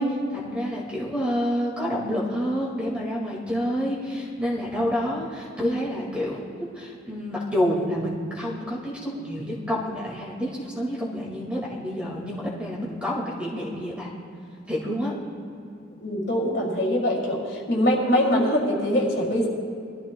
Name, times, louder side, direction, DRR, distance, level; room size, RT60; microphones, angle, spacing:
voice 1, 0.0-14.1 14.7-15.1, equal, 5° right, -4 dB, 2.0 m, -28 dB
voice 2, 16.0-19.5, equal, 55° left, -3 dB, 2.7 m, -23 dB
23.0 x 13.5 x 2.3 m, 2.5 s
head